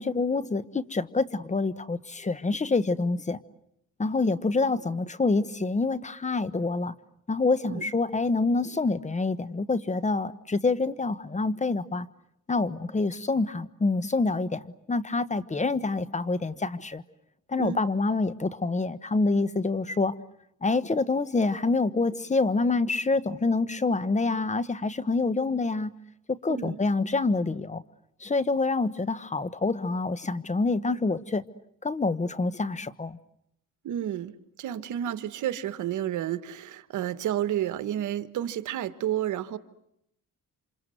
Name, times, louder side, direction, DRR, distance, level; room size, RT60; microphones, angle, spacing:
voice 1, 0.0-3.4 4.0-6.9 7.3-12.1 12.5-14.6 14.9-17.0 17.5-20.1 20.6-25.9 26.3-27.8 28.2-31.4 31.8-33.2, left 3 dB, 25° left, 15 dB, 1.2 m, -26 dB
voice 2, 33.8-39.6, right 11 dB, 75° right, 13 dB, 1.5 m, -31 dB
28.0 x 27.0 x 7.9 m, 0.77 s
cardioid pair, 90°, 30 cm